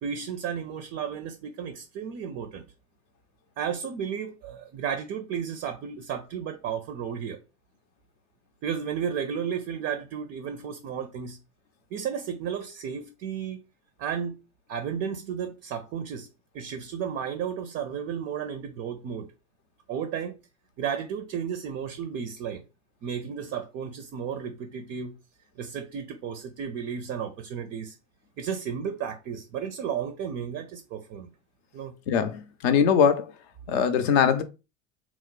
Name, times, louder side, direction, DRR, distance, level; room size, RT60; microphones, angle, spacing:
voice 1, 0.0-2.7 3.6-7.4 8.6-11.4 11.9-13.6 14.0-14.4 14.7-16.3 16.5-19.3 19.9-20.4 20.8-22.6 23.0-25.1 25.6-28.0 28.4-31.3 31.7-31.9, right 7 dB, 30° right, 0.4 m, -33 dB
voice 2, 32.1-33.3 33.7-34.4, left 7 dB, 50° left, 0.6 m, -22 dB
2.9 x 2.0 x 3.8 m
figure-of-eight pair, 70°, 40 cm